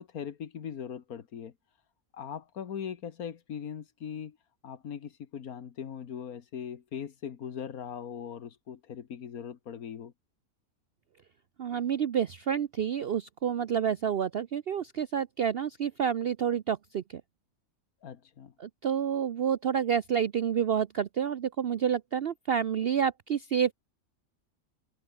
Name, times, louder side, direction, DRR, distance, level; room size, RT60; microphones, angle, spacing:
voice 1, 0.0-1.5 2.1-4.4 4.6-10.1 18.0-18.5, left 8 dB, 90° left, 1.8 m, -40 dB
voice 2, 11.6-17.2 18.6-23.7, right 8 dB, 55° right, 0.8 m, -29 dB
omnidirectional pair, 1.5 m